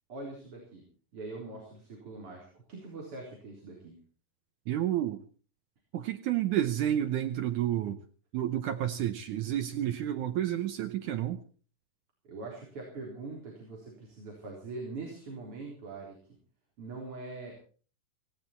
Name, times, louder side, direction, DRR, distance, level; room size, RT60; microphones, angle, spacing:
voice 1, 0.1-0.8 1.1-4.0 12.2-16.2 16.8-17.6, right 3 dB, 35° right, -1 dB, 4.4 m, -43 dB
voice 2, 4.7-5.2 5.9-8.0 8.3-11.4, right 11 dB, 80° right, 8 dB, 1.7 m, -30 dB
18.0 x 16.5 x 4.4 m, 0.40 s
omnidirectional pair, 4.7 m